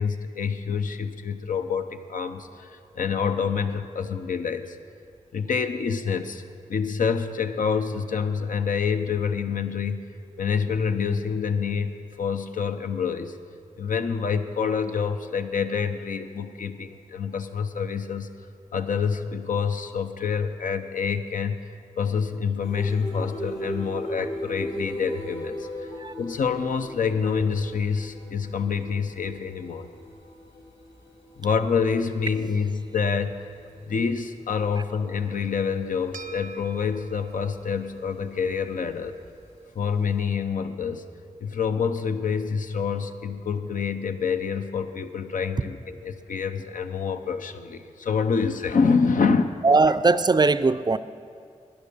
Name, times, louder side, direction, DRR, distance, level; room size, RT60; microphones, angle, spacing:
voice 1, 0.0-4.8 5.3-6.4 6.7-10.0 10.4-13.4 13.8-18.3 18.7-21.6 22.0-25.9 26.2-29.9 31.4-33.4 33.9-39.2 39.8-41.0 41.4-49.7, left 6 dB, 80° left, 7 dB, 0.7 m, -27 dB
sound 1, 22.6-38.2 38.7-40.1, equal, 55° left, 3.2 m, -38 dB
sound 2, 36.1-44.7, right 3 dB, 80° right, 0.7 m, -48 dB
voice 2, 49.6-51.0, right 3 dB, 30° right, 14 dB, 0.4 m, -20 dB
12.0 x 9.9 x 6.6 m, 2.3 s
cardioid pair, 55°, 14 cm